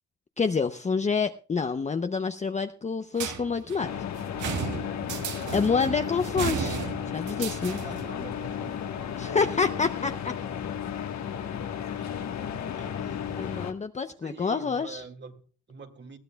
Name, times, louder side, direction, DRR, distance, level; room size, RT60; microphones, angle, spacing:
voice 1, 0.4-3.9 5.5-6.8 7.1-7.8 9.2-10.3 13.4-15.0, left 5 dB, 25° left, 0.7 m, -27 dB
sound 1, 3.2-8.1, right 6 dB, 75° right, 1.8 m, -34 dB
sound 2, 3.8-13.7, left 8 dB, 65° left, 1.4 m, -34 dB
voice 2, 7.8-9.4 12.0-12.2 12.8-13.6 14.1-16.2, right 4 dB, 35° right, 2.0 m, -46 dB
20.5 x 14.0 x 2.3 m
cardioid pair, 90°, 30 cm